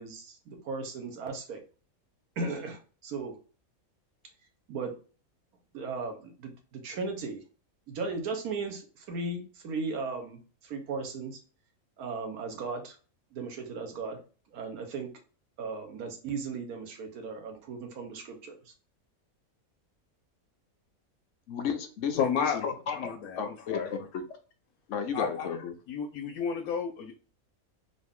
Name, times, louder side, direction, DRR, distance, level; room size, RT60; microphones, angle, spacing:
voice 1, 0.0-1.6 2.4-3.4 4.7-5.0 5.7-7.4 7.9-11.4 12.0-13.0 13.3-14.2 14.5-15.1 15.6-18.5, right 4 dB, 85° right, 4 dB, 1.4 m, -36 dB
voice 2, 21.5-23.8 24.1-24.2 24.9-25.7, left 6 dB, 65° left, 6 dB, 0.9 m, -33 dB
voice 3, 22.2-22.6 22.9-23.9 25.1-25.5 25.9-27.2, left 7 dB, 85° left, 3 dB, 1.1 m, -31 dB
4.0 x 2.5 x 3.6 m, 0.36 s
omnidirectional pair, 1.5 m